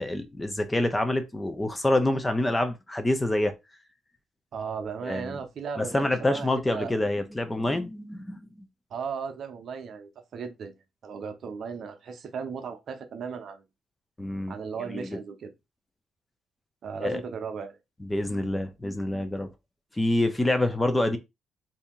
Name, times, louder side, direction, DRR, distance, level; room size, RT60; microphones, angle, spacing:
voice 1, 0.0-3.5 5.0-5.3 5.8-8.4 14.2-14.5 14.9-15.2 17.0-17.2 18.0-19.5 20.0-21.2, left 1 dB, 15° left, 0.7 m, -26 dB
voice 2, 4.5-7.0 8.9-10.8 11.0-13.6 14.5-15.5 16.8-17.8, right 6 dB, 60° right, 0.7 m, -36 dB
2.8 x 2.7 x 3.7 m
cardioid pair, 90°, 0 cm